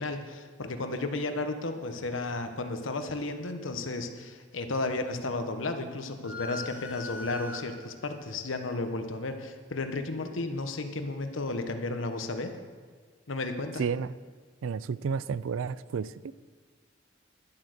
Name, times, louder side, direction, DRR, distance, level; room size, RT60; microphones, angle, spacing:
voice 1, 0.0-12.5 13.3-13.8, left 2 dB, 80° left, 7 dB, 1.0 m, -33 dB
sound 1, 6.2-8.1, left 2 dB, 5° right, 1.3 m, -41 dB
voice 2, 13.8-14.1 14.6-16.3, right 6 dB, 85° right, 18 dB, 0.4 m, -31 dB
11.0 x 7.8 x 6.5 m, 1.6 s
head